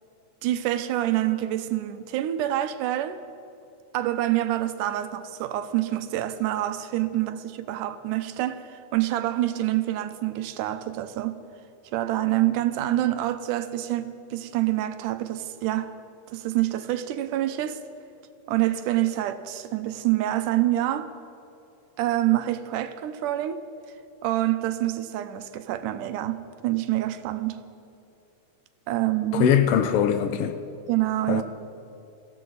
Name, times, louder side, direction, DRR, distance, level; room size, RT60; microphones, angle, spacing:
voice 1, 0.4-3.2 3.9-11.4 11.9-15.9 16.3-17.8 18.5-21.1 22.0-23.6 24.2-27.6 28.9-29.5 30.9-31.4, right 14 dB, 85° right, 2.3 m, -26 dB
voice 2, 29.3-30.5 31.3-31.4, left 8 dB, 90° left, 1.3 m, -21 dB
21.5 x 15.0 x 4.0 m
omnidirectional pair, 3.6 m